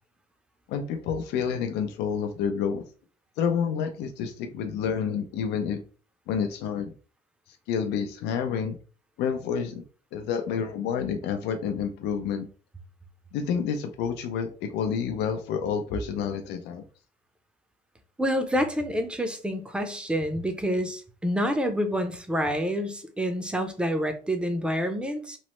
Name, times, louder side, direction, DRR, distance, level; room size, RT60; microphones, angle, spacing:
voice 1, 0.7-2.8 3.4-5.8 6.3-6.9 7.7-8.8 9.2-9.8 10.1-12.5 13.3-16.8, left 7 dB, 85° left, 6 dB, 0.5 m, -29 dB
voice 2, 18.2-25.4, equal, 5° right, 6 dB, 0.5 m, -28 dB
3.1 x 2.0 x 3.0 m, 0.38 s
cardioid pair, 110°, 17 cm